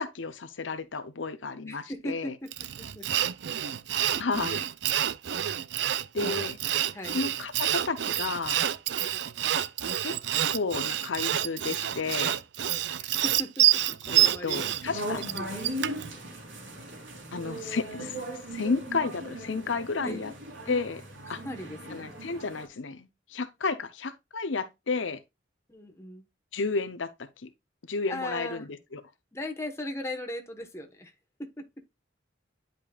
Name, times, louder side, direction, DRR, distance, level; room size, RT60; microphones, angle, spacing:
voice 1, 0.0-2.3 4.2-4.6 6.1-6.6 7.1-8.6 10.0-10.2 10.5-12.4 14.1-15.2 17.3-18.2 18.5-20.3 20.7-21.0 21.3-21.4 21.9-25.2 26.5-27.5 27.9-28.7 28.9-29.0, left 4 dB, 85° left, 0.8 m, -32 dB
voice 2, 1.7-3.1 4.1-4.2 6.1-6.5 6.9-7.2 13.0-14.7 15.1-15.6 20.0-20.2 21.3-22.1 25.7-26.3 28.1-28.7 29.3-31.1 31.4-31.7, left 1 dB, 15° left, 1.3 m, -38 dB
Sawing, 2.5-16.1, right 12 dB, 65° right, 0.5 m, -28 dB
sound 1, 14.8-22.7, right 1 dB, 80° right, 3.1 m, -38 dB
10.0 x 5.3 x 2.4 m
head